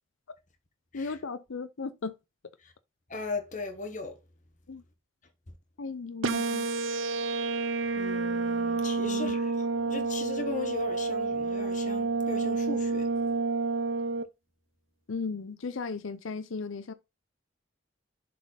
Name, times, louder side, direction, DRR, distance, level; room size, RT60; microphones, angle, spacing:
voice 1, 0.9-2.1 4.7-4.8 5.8-6.7 9.0-9.3 15.1-16.9, left 4 dB, 85° left, 0.6 m, -36 dB
voice 2, 3.1-4.2 7.9-13.1, left 3 dB, 40° left, 1.3 m, -38 dB
sound 1, 6.2-14.2, right 3 dB, 80° right, 0.7 m, -29 dB
7.2 x 4.2 x 4.1 m
head